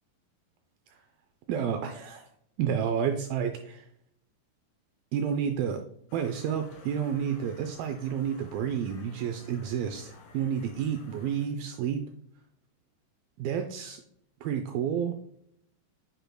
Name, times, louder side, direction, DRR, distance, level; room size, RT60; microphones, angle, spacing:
voice 1, 1.5-2.3 2.6-3.9 5.1-5.8 6.1-12.0 13.4-14.0 14.4-15.1, right 8 dB, 85° right, 6 dB, 2.0 m, -30 dB
sound 1, 6.1-11.5, left 4 dB, 85° left, 3.8 m, -53 dB
7.8 x 6.6 x 2.2 m, 0.70 s
omnidirectional pair, 4.8 m